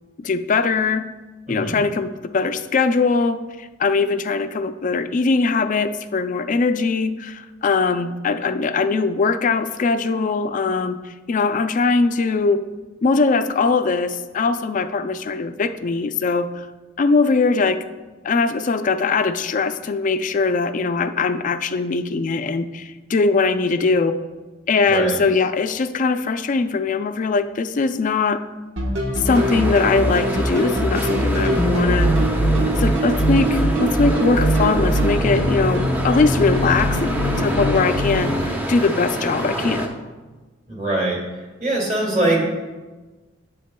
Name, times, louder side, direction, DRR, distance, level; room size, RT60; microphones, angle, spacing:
voice 1, 0.2-1.1 1.5-11.0 11.3-12.6 13.0-16.5 17.0-17.8 18.2-24.2 24.7-28.4 29.2-32.1 32.8-40.0, left 4 dB, 40° left, 10 dB, 0.4 m, -21 dB
voice 2, 1.5-1.8 24.9-25.2 40.7-41.2 41.6-42.5, right 2 dB, 40° right, -2 dB, 2.3 m, -22 dB
sound 1, 28.8-38.4, equal, 85° right, 1.2 m, -22 dB
sound 2, 29.3-39.9, right 1 dB, 10° right, 0.7 m, -27 dB
10.0 x 7.6 x 2.2 m, 1.2 s
head